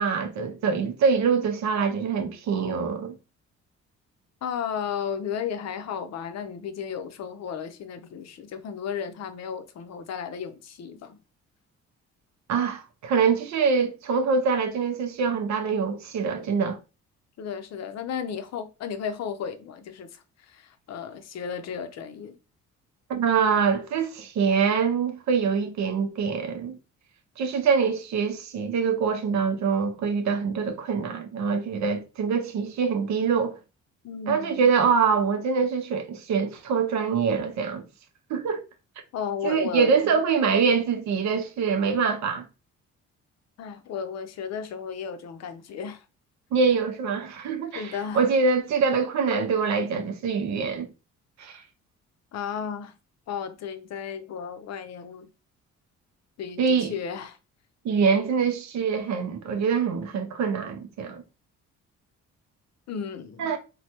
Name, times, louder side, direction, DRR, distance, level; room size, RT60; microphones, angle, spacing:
voice 1, 0.0-3.2 12.5-16.8 23.1-26.8 27.4-33.6 34.3-37.8 38.3-38.6 39.4-42.4 46.5-50.9 51.4-51.6 56.6-57.0 57.8-61.2 63.4-63.6, right 5 dB, 65° right, 0.6 m, -24 dB
voice 2, 4.4-11.2 17.4-22.4 34.0-34.7 39.1-40.2 43.6-46.0 47.7-48.2 52.3-52.9 53.3-55.3 56.4-57.4 62.9-63.5, left 7 dB, 60° left, 0.5 m, -34 dB
3.2 x 2.2 x 2.8 m
cardioid pair, 90°, 30 cm